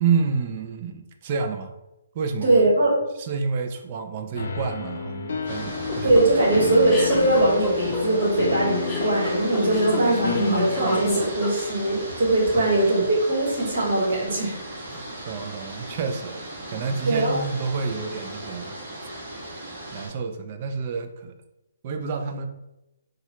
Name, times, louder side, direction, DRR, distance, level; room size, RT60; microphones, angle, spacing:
voice 1, 0.0-1.7 2.1-2.6 3.2-6.2 12.5-12.7 14.9-16.4 16.7-18.7 19.9-21.3 21.8-22.5, right 5 dB, 35° right, 6 dB, 0.3 m, -29 dB
voice 2, 2.4-3.0 6.0-14.6 17.0-17.4, right 2 dB, 75° right, -3 dB, 1.4 m, -21 dB
Classical Piano Loop, 4.4-11.1, left 4 dB, 70° left, 0.5 m, -30 dB
sound 1, 5.4-20.1, right 1 dB, 60° right, 1.4 m, -36 dB
sound 2, 5.7-12.0, left 1 dB, 5° left, 0.6 m, -29 dB
3.6 x 2.1 x 2.9 m, 0.95 s
hypercardioid pair, 165°, 0 cm